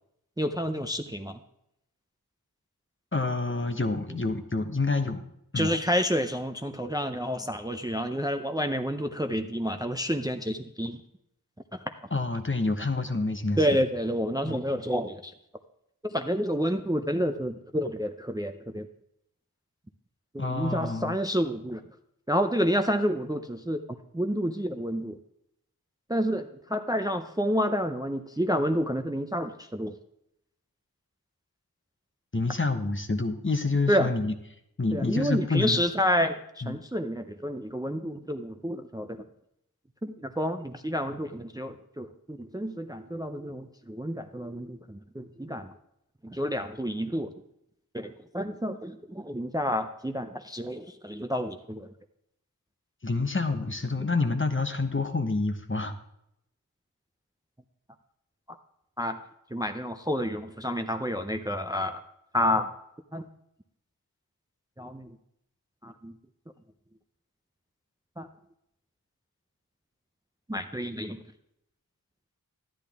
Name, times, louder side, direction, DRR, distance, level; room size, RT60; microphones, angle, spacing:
voice 1, 0.4-1.4 5.5-11.0 13.6-15.3 16.0-18.9 20.3-21.8 22.3-23.8 24.1-25.2 26.1-29.9 33.9-34.1 34.9-39.2 40.0-45.7 46.2-47.3 47.9-51.9 59.0-59.2 59.5-62.0 62.3-62.7 63.1-63.3 64.8-65.2 65.8-66.1 68.2-68.3 70.5-71.2, equal, 10° right, 7 dB, 0.5 m, -29 dB
voice 2, 3.1-5.3 5.5-5.7 12.1-13.7 14.4-14.6 20.4-21.2 32.3-34.3 34.8-35.8 36.6-36.8 53.0-55.9, left 3 dB, 35° left, 7 dB, 0.9 m, -28 dB
12.0 x 10.0 x 3.5 m, 0.78 s
wide cardioid pair, 45°, 37 cm